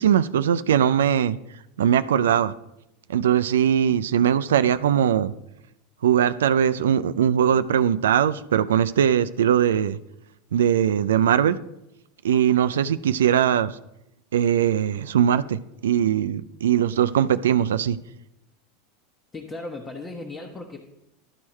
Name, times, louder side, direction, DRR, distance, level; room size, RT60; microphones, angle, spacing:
voice 1, 0.0-1.4 1.8-2.5 3.1-5.3 6.0-10.0 10.5-11.6 12.2-13.8 14.3-18.0, right 9 dB, 75° right, 12 dB, 0.3 m, -20 dB
voice 2, 19.3-20.8, left 2 dB, 25° left, 1 dB, 1.1 m, -36 dB
12.5 x 4.7 x 4.3 m, 0.87 s
hypercardioid pair, 85°, 0 cm